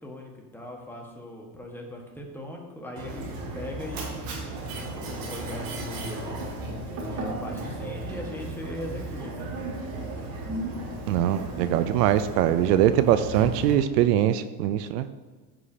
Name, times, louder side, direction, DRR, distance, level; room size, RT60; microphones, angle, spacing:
voice 1, 0.0-3.2 3.5-4.2 4.7-6.3 7.1-9.5, left 1 dB, 5° left, 0 dB, 1.5 m, -39 dB
Mechanisms, 3.0-13.7, right 2 dB, 45° right, 2.1 m, -34 dB
voice 2, 11.1-15.1, right 11 dB, 85° right, 12 dB, 0.6 m, -22 dB
13.0 x 4.9 x 2.8 m, 1.4 s
supercardioid pair, 115°, 47 cm